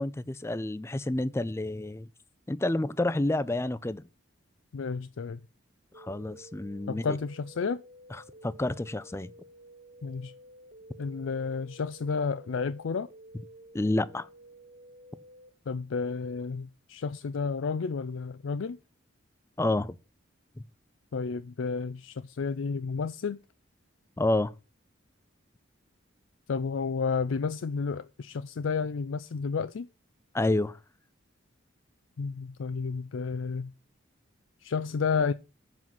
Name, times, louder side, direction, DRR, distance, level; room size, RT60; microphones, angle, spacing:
voice 1, 0.0-2.1 2.5-4.0 6.0-7.2 8.1-9.3 13.7-14.3 19.6-20.0 20.6-20.7 24.2-24.5 30.3-30.8, left 1 dB, 15° left, 0.4 m, -29 dB
voice 2, 4.7-5.4 6.9-7.8 10.0-10.3 11.0-13.1 15.7-18.8 21.1-23.4 26.5-29.9 32.2-33.7 34.6-35.3, left 5 dB, 75° left, 0.4 m, -31 dB
sound 1, 5.9-15.5, equal, 45° right, 2.2 m, -52 dB
7.4 x 5.6 x 7.6 m
head